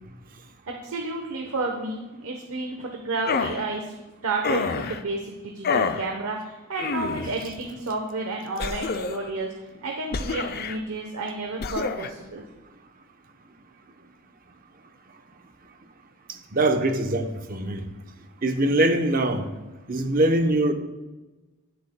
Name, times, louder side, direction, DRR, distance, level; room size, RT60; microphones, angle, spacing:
voice 1, 0.7-3.9 4.2-9.5 9.8-12.5, right 3 dB, 75° right, 1 dB, 1.0 m, -31 dB
sound 1, 3.3-3.6 4.4-5.0 5.6-6.1 6.8-7.4 8.6-9.3 10.1-10.8 11.6-12.1, left 4 dB, 45° left, 0.5 m, -27 dB
voice 2, 16.5-17.9 18.4-19.5 19.9-20.7, right 1 dB, 40° right, 6 dB, 0.8 m, -22 dB
19.5 x 7.9 x 2.2 m, 1.2 s
head